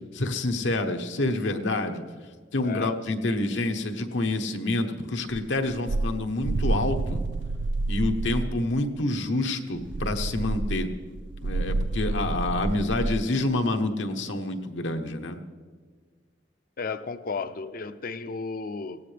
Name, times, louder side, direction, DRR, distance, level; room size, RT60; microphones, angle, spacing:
voice 1, 0.1-2.0 2.5-7.2 7.9-10.9 11.4-15.4, left 2 dB, 80° left, 5 dB, 1.1 m, -27 dB
voice 2, 2.6-3.0 16.8-19.0, left 4 dB, 50° left, 11 dB, 0.6 m, -33 dB
sound 1, 5.3-8.6 9.8-13.2, right 2 dB, 75° right, 0.5 m, -29 dB
18.0 x 16.5 x 3.4 m, 1.5 s
head